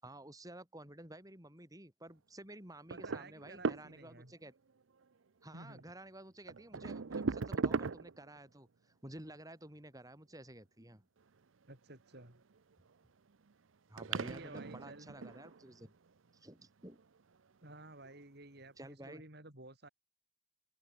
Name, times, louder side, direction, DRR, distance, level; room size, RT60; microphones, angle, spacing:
voice 1, 0.0-4.5 5.4-11.1 13.9-15.9 16.3-17.0 18.8-19.2, right 1 dB, 20° right, 6.7 m, -52 dB
voice 2, 2.9-4.3 5.5-5.8 11.7-12.4 14.2-15.1 17.6-19.9, right 2 dB, 55° right, 5.6 m, -53 dB
sound 1, 2.9-4.3 5.8-5.9 6.5-8.4 12.2-12.9 13.5-13.6 14.0-16.0 16.9-17.2 18.0-18.1 18.6-18.7, right 4 dB, 85° right, 0.7 m, -38 dB
open air
head